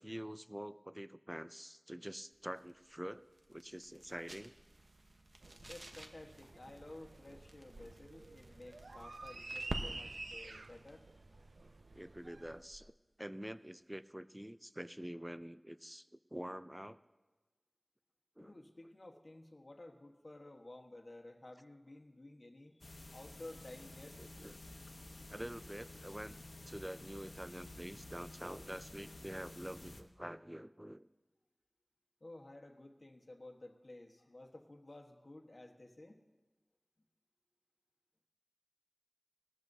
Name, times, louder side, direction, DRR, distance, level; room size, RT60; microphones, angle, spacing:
voice 1, 0.0-3.2 3.5-4.5 11.9-17.0 18.4-18.6 24.2-24.5 25.3-26.4 26.7-31.1, equal, 10° right, 14 dB, 0.4 m, -46 dB
sound 1, 2.3-13.0, right 1 dB, 55° right, 1.0 m, -51 dB
sound 2, 5.4-12.6, right 3 dB, 85° right, 0.3 m, -50 dB
voice 2, 5.6-11.1 18.4-24.2 32.2-36.2, left 2 dB, 50° left, 2 dB, 1.2 m, -54 dB
sound 3, 22.8-30.0, left 1 dB, 80° left, 0.9 m, -52 dB
19.0 x 13.0 x 2.7 m, 1.3 s
wide cardioid pair, 60°, 0 cm